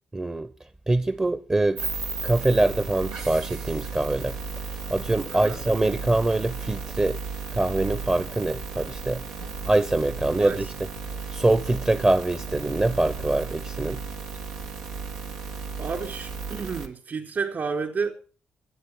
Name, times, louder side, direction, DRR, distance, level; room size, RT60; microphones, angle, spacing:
voice 1, 0.1-0.5 0.9-1.9 2.2-4.4 4.9-7.2 7.5-9.2 9.7-10.7 11.3-14.0, right 2 dB, 20° right, 0.9 m, -24 dB
sound 1, 1.8-16.9, right 5 dB, 85° right, 1.8 m, -35 dB
voice 2, 5.3-5.6 10.4-10.6 15.8-18.1, right 5 dB, 55° right, 3.9 m, -31 dB
24.0 x 8.9 x 4.9 m
hypercardioid pair, 50°, 4 cm